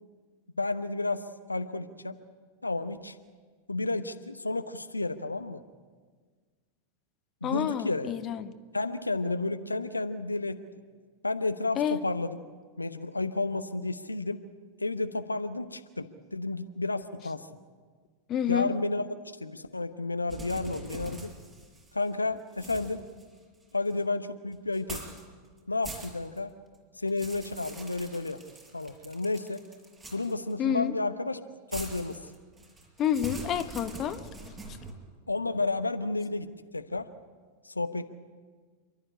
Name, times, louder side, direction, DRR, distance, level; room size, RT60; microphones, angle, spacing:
voice 1, 0.6-2.1 2.6-3.2 3.7-5.6 7.4-8.1 8.7-10.6 11.2-12.4 12.8-14.4 14.8-17.5 18.5-19.1 19.4-21.3 21.9-23.0 23.7-25.0 25.7-26.5 27.0-28.4 28.7-29.6 30.1-31.4 31.7-32.2 35.3-36.5 36.7-37.1 37.6-38.1, left 3 dB, 80° left, 9 dB, 0.9 m, -31 dB
voice 2, 7.4-8.5 11.8-12.0 18.3-18.7 30.6-30.9 33.0-34.2, left 10 dB, 30° left, 10 dB, 1.2 m, -28 dB
sound 1, 20.3-22.1 22.5-24.0 24.7-25.3 25.6-26.4 26.7-30.5 31.7-34.9, right 2 dB, 20° right, 5.6 m, -44 dB
28.5 x 12.5 x 9.9 m, 1.5 s
figure-of-eight pair, 90°, 0 cm